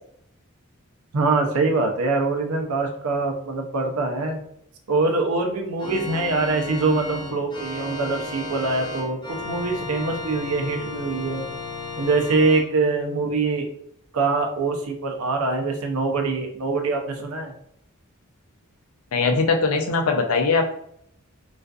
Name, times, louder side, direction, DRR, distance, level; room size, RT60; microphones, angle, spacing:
voice 1, 1.1-4.4 4.9-11.5 12.0-13.7 14.1-17.5, right 3 dB, 80° right, 3 dB, 0.5 m, -24 dB
Organ, 5.8-12.6, left 3 dB, 20° left, 0.4 m, -34 dB
voice 2, 19.1-20.7, left 4 dB, 75° left, 4 dB, 0.4 m, -21 dB
2.4 x 2.4 x 2.3 m, 0.70 s
head